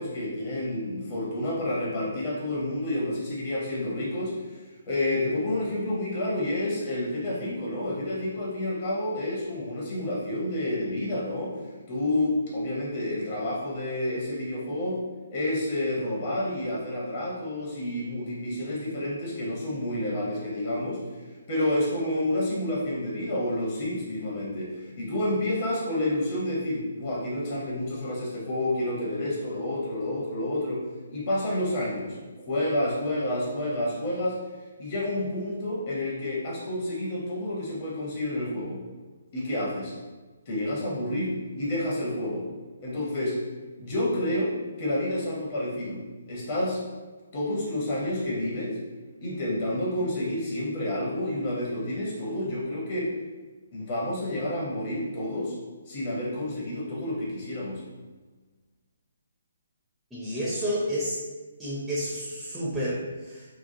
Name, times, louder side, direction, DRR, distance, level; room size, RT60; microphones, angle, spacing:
voice 1, 0.0-4.6 4.9-11.6 11.9-15.0 15.3-21.0 21.5-30.8 31.1-34.4 34.8-38.8 39.3-39.9 40.5-42.5 42.8-43.4 43.8-46.0 46.3-46.8 47.3-48.8 49.2-53.1 53.7-55.6 55.9-57.8, left 1 dB, 40° left, -5 dB, 0.8 m, -29 dB
voice 2, 60.1-61.2 61.6-63.5, equal, 5° right, -10 dB, 0.6 m, -30 dB
2.9 x 2.2 x 2.6 m, 1.3 s
figure-of-eight pair, 140°, 0 cm